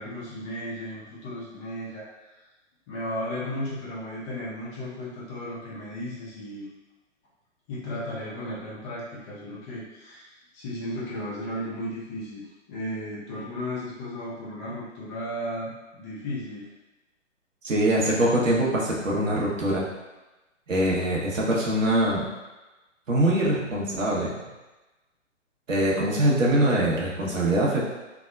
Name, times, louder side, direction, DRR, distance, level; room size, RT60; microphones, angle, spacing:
voice 1, 0.0-2.4 2.9-6.7 7.7-12.4 12.7-16.6, left 1 dB, 25° left, -7 dB, 0.6 m, -35 dB
voice 2, 17.6-19.9 20.7-22.3 23.1-24.3 25.7-27.9, right 1 dB, 85° right, -5 dB, 0.9 m, -23 dB
3.5 x 2.1 x 2.3 m, 1.1 s
figure-of-eight pair, 125°, 38 cm